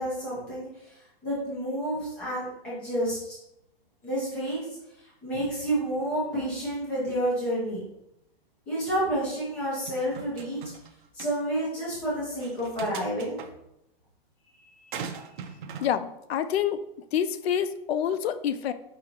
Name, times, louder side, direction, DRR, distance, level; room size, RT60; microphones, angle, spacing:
voice 1, 0.0-3.4 4.0-4.7 5.0-7.9 8.7-10.6 11.1-13.4 14.5-15.6, right 1 dB, 5° left, -7 dB, 0.4 m, -30 dB
sound 1, 9.9-10.9 11.2-11.3 12.4-13.5 14.9-15.9, right 6 dB, 55° right, 0.5 m, -39 dB
voice 2, 15.8-16.8 17.1-18.7, left 9 dB, 90° left, 12 dB, 0.5 m, -27 dB
4.8 x 3.8 x 2.9 m, 0.85 s
hypercardioid pair, 175°, 30 cm